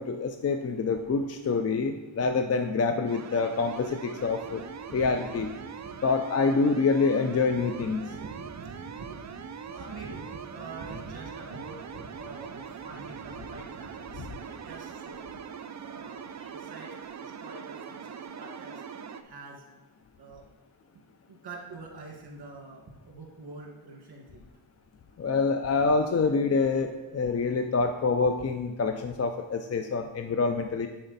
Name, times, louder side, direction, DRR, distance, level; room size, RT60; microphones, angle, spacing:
voice 1, 0.0-4.6 4.9-5.5 6.0-8.0 14.2-14.3 25.2-30.9, left 4 dB, 35° left, 6 dB, 0.4 m, -26 dB
sound 1, 3.1-19.2, right 7 dB, 40° right, 0.4 m, -42 dB
voice 2, 4.6-5.2 5.6-5.9 7.5-15.2 15.7-16.2 16.5-18.8 19.2-19.6 20.2-20.4 21.3-24.4, right 3 dB, 55° right, 0 dB, 1.7 m, -45 dB
10.0 x 4.3 x 4.0 m, 1.1 s
wide cardioid pair, 120°, 46 cm